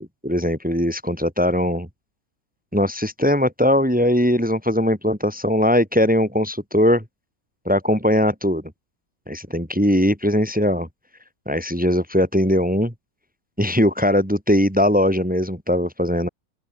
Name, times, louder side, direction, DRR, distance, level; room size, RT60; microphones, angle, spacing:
voice 1, 0.0-1.9 2.7-7.0 7.6-8.6 9.3-10.9 11.5-12.9 13.6-16.3, equal, 5° right, 3.4 m, -20 dB
open air
omnidirectional pair, 2.0 m